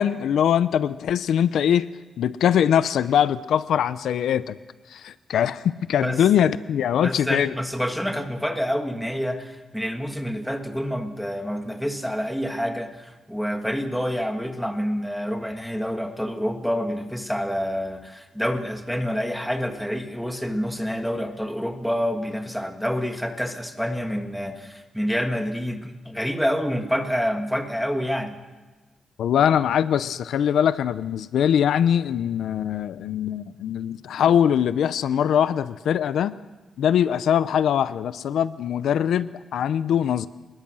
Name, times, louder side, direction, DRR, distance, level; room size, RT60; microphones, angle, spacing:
voice 1, 0.0-1.9 2.2-4.6 4.9-7.5 29.2-36.3 36.8-40.3, left 9 dB, 90° left, 15 dB, 0.6 m, -22 dB
voice 2, 7.0-28.4, equal, ahead, 5 dB, 1.6 m, -27 dB
24.5 x 21.0 x 6.2 m, 1.2 s
wide cardioid pair, 165°, 0 cm